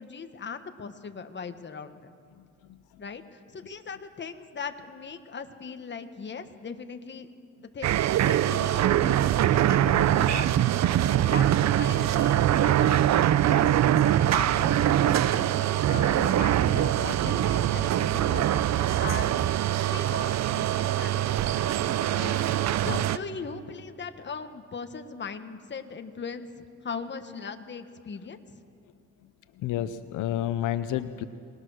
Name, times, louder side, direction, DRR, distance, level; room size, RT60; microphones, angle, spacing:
voice 1, 0.0-2.1 3.0-7.3 7.7-15.5 15.9-21.4 22.2-28.4, left 5 dB, 35° left, 8 dB, 1.5 m, -39 dB
voice 2, 2.4-3.1 22.8-23.0 29.6-31.2, left 12 dB, 85° left, 12 dB, 0.8 m, -31 dB
sound 1, 7.8-23.2, right 12 dB, 65° right, 0.7 m, -23 dB
25.0 x 20.0 x 6.5 m, 2.2 s
cardioid pair, 90°, 30 cm